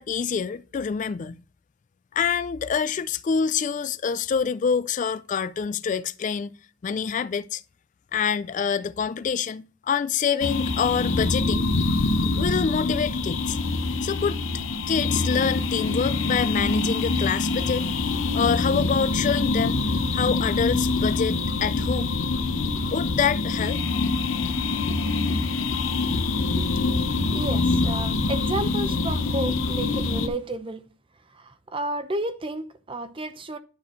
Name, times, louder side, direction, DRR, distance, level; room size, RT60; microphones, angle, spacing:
voice 1, 0.0-1.4 2.1-6.5 6.8-7.6 8.1-11.7 12.4-13.6 14.0-14.4 14.9-17.8 18.3-19.8 20.1-22.1 22.9-23.8, left 6 dB, 40° left, 0.3 m, -26 dB
sound 1, 10.4-30.3, left 3 dB, 75° left, 0.9 m, -25 dB
voice 2, 27.3-30.8 31.3-33.6, right 1 dB, 25° right, 0.7 m, -32 dB
9.6 x 4.2 x 4.4 m
head